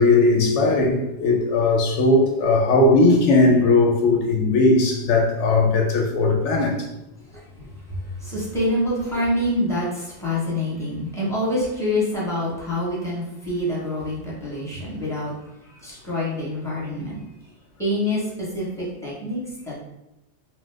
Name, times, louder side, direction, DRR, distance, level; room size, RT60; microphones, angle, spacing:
voice 1, 0.0-6.8, left 2 dB, 70° left, 1 dB, 0.8 m, -18 dB
voice 2, 7.9-15.3 15.6-17.2 17.8-19.8, left 1 dB, 5° left, -7 dB, 0.9 m, -26 dB
3.0 x 2.1 x 3.3 m, 0.90 s
omnidirectional pair, 1.3 m